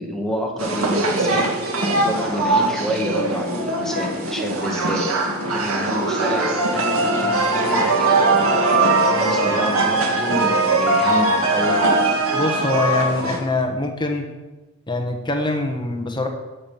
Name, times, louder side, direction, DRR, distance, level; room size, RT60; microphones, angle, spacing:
voice 1, 0.0-5.1 5.5-11.8, equal, ahead, 0 dB, 2.0 m, -28 dB
sound 1, 0.6-13.4, right 2 dB, 70° right, 2.0 m, -20 dB
voice 2, 12.3-14.3 14.9-16.3, left 2 dB, 20° left, 4 dB, 1.2 m, -23 dB
12.5 x 5.9 x 7.4 m, 1.1 s
head